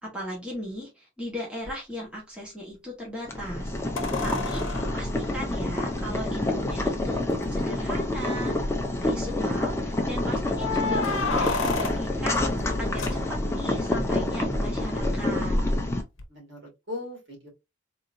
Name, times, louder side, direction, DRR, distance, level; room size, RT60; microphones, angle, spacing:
voice 1, 0.0-3.8 4.2-4.7 4.9-8.6 9.0-15.6, equal, 5° right, -4 dB, 1.4 m, -37 dB
sound 1, 1.7-1.8 4.0-6.3 7.3-7.4 7.7-7.8 8.3-8.8 10.5-13.7 16.2-16.3, left 3 dB, 75° left, 0.9 m, -32 dB
Boiling, 3.2-16.0, left 1 dB, 15° left, 0.5 m, -28 dB
voice 2, 16.3-17.5, left 2 dB, 65° right, 1 dB, 2.2 m, -41 dB
3.7 x 3.0 x 2.6 m, 0.23 s
head